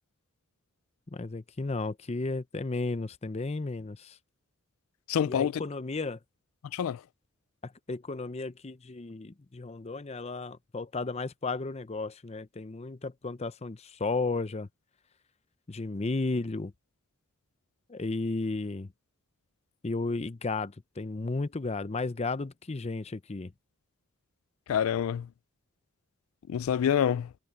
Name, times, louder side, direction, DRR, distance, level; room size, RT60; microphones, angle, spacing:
voice 1, 1.1-4.2 5.2-6.2 7.6-14.7 15.7-16.7 17.9-18.9 19.8-23.5, left 3 dB, 30° left, 0.6 m, -34 dB
voice 2, 5.1-5.6 6.7-7.0 24.7-25.3 26.5-27.3, left 8 dB, 85° left, 0.3 m, -27 dB
head